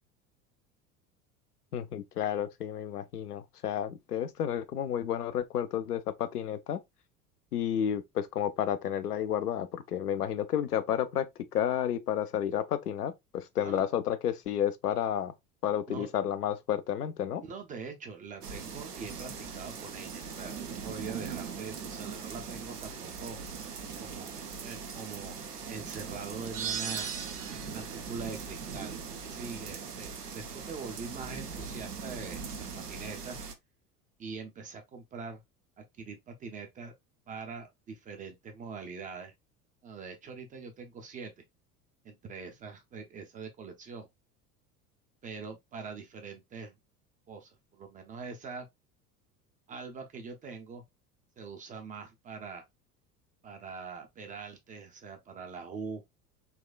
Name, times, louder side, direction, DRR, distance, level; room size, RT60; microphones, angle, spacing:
voice 1, 1.7-6.8 7.5-11.3 11.5-15.3 15.6-17.4, left 9 dB, 80° left, 0.5 m, -31 dB
voice 2, 17.4-23.4 24.0-24.3 24.6-25.4 25.7-27.1 27.5-29.0 29.3-33.4 34.2-35.4 35.8-36.9 37.3-39.3 39.8-41.4 42.0-44.1 45.2-46.7 47.3-48.7 49.7-50.8 51.4-52.6 53.4-56.0, right 5 dB, 20° right, 0.4 m, -43 dB
sound 1, 18.4-33.5, right 5 dB, 85° right, 0.6 m, -41 dB
sound 2, 26.5-27.9, right 8 dB, 55° right, 0.9 m, -36 dB
4.1 x 2.2 x 2.3 m
figure-of-eight pair, 70°, 45 cm